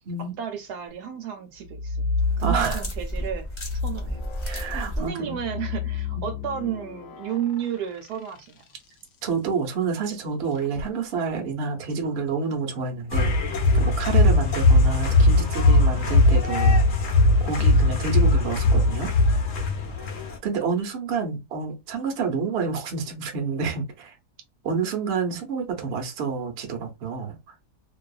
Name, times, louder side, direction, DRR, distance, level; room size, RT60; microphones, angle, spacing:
voice 1, 0.2-2.1 2.4-3.5 3.8-4.3 5.0-8.6 20.1-20.3, right 9 dB, 75° right, 1.0 m, -32 dB
sound 1, 1.6-3.1 3.5-9.0 10.6-10.9, left 3 dB, 85° left, 0.6 m, -31 dB
sound 2, 2.2-5.1, equal, 35° left, 0.4 m, -32 dB
voice 2, 2.4-2.8 4.4-5.4 9.2-13.3 13.7-16.8 17.4-19.1 20.4-24.2 24.6-27.5, right 5 dB, 55° right, 0.7 m, -28 dB
sound 3, 13.1-20.4, left 2 dB, 60° left, 0.9 m, -19 dB
2.7 x 2.3 x 2.3 m
omnidirectional pair, 1.9 m